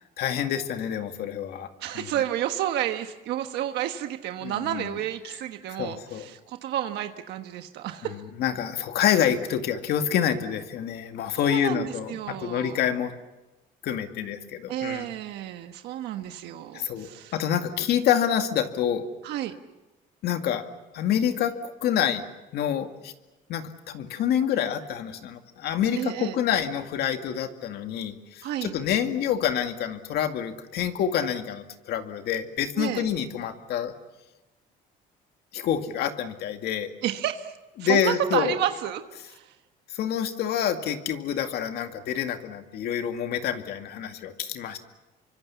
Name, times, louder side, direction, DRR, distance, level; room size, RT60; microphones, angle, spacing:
voice 1, 0.2-1.7 1.9-2.1 4.4-5.0 5.8-6.3 8.1-13.1 13.8-15.1 16.7-19.1 20.2-20.6 20.9-22.2 22.5-23.1 23.5-33.9 35.5-36.9 37.8-38.6 39.9-44.8, left 9 dB, 70° left, 6 dB, 2.2 m, -27 dB
voice 2, 1.8-8.2 11.3-12.8 14.7-17.3 19.2-19.5 26.0-26.4 28.4-28.7 32.8-33.0 37.0-37.5 37.8-39.5, right 12 dB, 80° right, 7 dB, 1.3 m, -31 dB
27.5 x 24.5 x 7.2 m, 1.0 s
cardioid pair, 110°, 17 cm